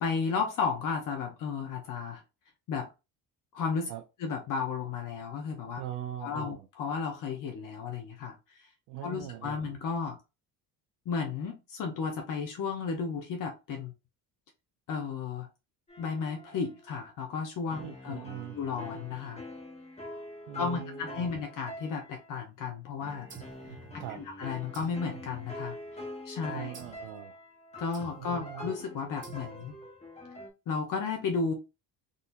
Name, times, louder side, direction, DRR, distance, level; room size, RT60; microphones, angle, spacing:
voice 1, 0.0-2.2 2.7-2.9 3.5-3.9 4.2-5.8 6.2-8.4 9.0-10.2 11.1-13.9 14.9-15.5 16.0-18.2 18.5-19.4 20.5-23.3 23.9-25.8 26.2-26.7 27.8-29.7 30.7-31.5, left 5 dB, 50° left, 0.8 m, -33 dB
voice 2, 5.8-6.7 8.9-9.7 17.8-18.6 20.5-21.3 24.0-24.3 26.5-27.4 28.2-28.7, right 12 dB, 85° right, 0.7 m, -41 dB
sound 1, 15.9-17.0 17.7-22.4 23.0-30.5, left 1 dB, 15° left, 1.1 m, -45 dB
sound 2, 23.3-24.3 24.7-26.0 26.7-27.2 27.9-28.5 29.2-29.9, right 5 dB, 30° right, 1.0 m, -50 dB
3.9 x 2.7 x 2.6 m
cardioid pair, 160°, 40 cm